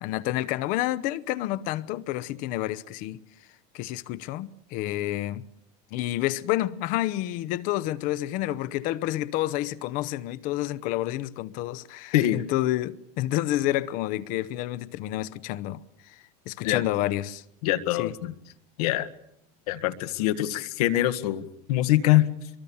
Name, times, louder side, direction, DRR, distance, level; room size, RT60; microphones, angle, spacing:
voice 1, 0.0-3.2 3.7-5.4 5.9-17.4 18.0-18.1, left 15 dB, 45° left, 0.9 m, -29 dB
voice 2, 12.1-12.4 16.6-16.9 17.6-18.3 18.8-19.1 19.7-22.5, left 14 dB, 80° left, 1.8 m, -24 dB
26.0 x 23.0 x 7.2 m
cardioid pair, 170°, 19 cm